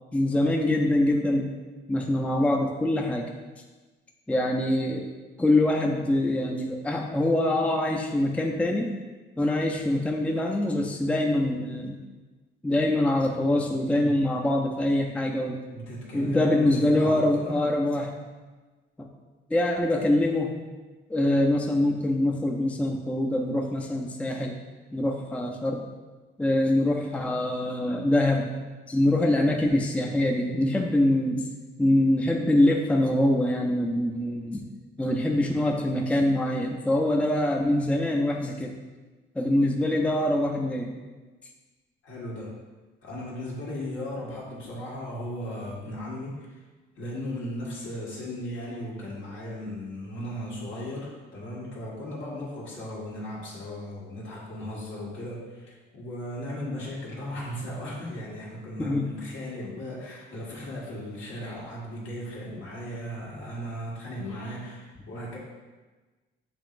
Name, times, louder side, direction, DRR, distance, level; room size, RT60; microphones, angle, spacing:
voice 1, 0.1-1.5 1.9-3.3 4.3-5.1 5.4-8.9 9.4-12.0 12.6-15.6 16.1-18.1 19.5-20.6 21.1-24.6 24.9-25.8 26.4-28.5 28.9-31.5 31.8-34.7 35.0-38.8 39.4-40.9 58.8-59.0, left 1 dB, 5° left, 1 dB, 0.4 m, -24 dB
voice 2, 15.7-17.6 42.0-42.5 43.0-46.6 47.0-65.4, left 1 dB, 75° left, -5 dB, 1.5 m, -36 dB
7.0 x 3.0 x 2.5 m, 1.3 s
cardioid pair, 90°, 20 cm